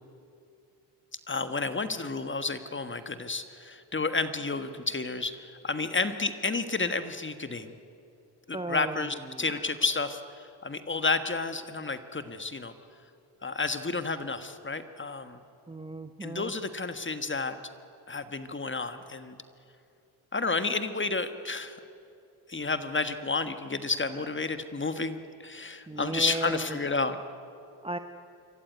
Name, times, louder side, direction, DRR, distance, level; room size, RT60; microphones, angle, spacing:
voice 1, 1.3-7.8 8.5-12.7 13.4-15.4 16.2-17.6 18.1-19.4 20.3-21.8 22.5-27.2, left 3 dB, 25° left, 10 dB, 1.5 m, -31 dB
voice 2, 8.5-9.7 15.7-16.5 24.1-24.3 25.9-26.8 27.8-28.0, right 2 dB, 10° right, 8 dB, 0.9 m, -36 dB
26.5 x 14.5 x 9.5 m, 2.6 s
supercardioid pair, 60°, 49 cm